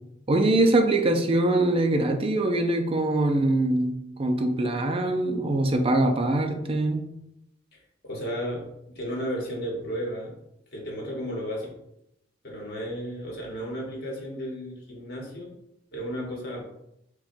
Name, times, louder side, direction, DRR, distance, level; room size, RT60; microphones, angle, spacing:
voice 1, 0.3-7.1, right 2 dB, 30° right, 4 dB, 0.5 m, -23 dB
voice 2, 8.0-8.6 8.9-10.3 10.7-11.7 12.4-15.5 15.9-16.6, equal, 60° left, -2 dB, 1.2 m, -33 dB
5.6 x 2.2 x 2.6 m, 0.81 s
head